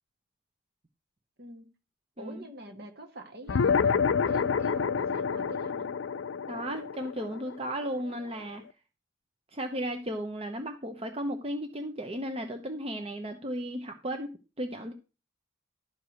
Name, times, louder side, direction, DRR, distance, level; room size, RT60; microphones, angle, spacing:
voice 1, 2.2-6.0, right 1 dB, 55° right, 1.8 m, -45 dB
sound 1, 3.5-8.3, left 6 dB, 70° left, 0.4 m, -28 dB
voice 2, 6.5-8.6 9.5-14.9, equal, 30° right, 0.8 m, -35 dB
12.0 x 4.8 x 6.2 m
head